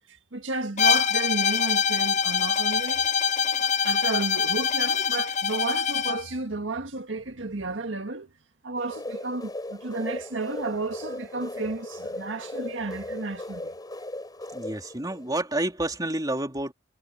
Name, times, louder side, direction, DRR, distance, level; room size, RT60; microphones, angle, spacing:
voice 1, 0.3-3.1 3.6-8.3 8.6-13.7, right 3 dB, 90° right, 1.8 m, -32 dB
Bowed string instrument, 0.8-6.2, left 7 dB, 40° left, 0.8 m, -24 dB
sound 1, 8.8-15.4, left 1 dB, 20° left, 5.8 m, -37 dB
voice 2, 14.5-16.7, right 1 dB, 20° right, 3.3 m, -29 dB
head